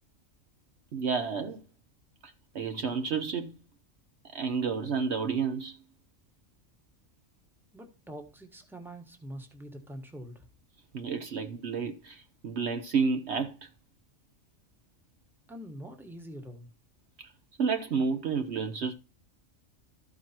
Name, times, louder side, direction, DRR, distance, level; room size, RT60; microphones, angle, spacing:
voice 1, 0.9-1.6 2.2-3.5 4.3-5.8 10.9-13.7 17.2-17.3 17.6-18.9, right 5 dB, 60° right, 1.0 m, -30 dB
voice 2, 7.7-10.5 15.5-16.7, equal, ahead, 1.2 m, -44 dB
13.5 x 4.6 x 4.3 m
omnidirectional pair, 1.3 m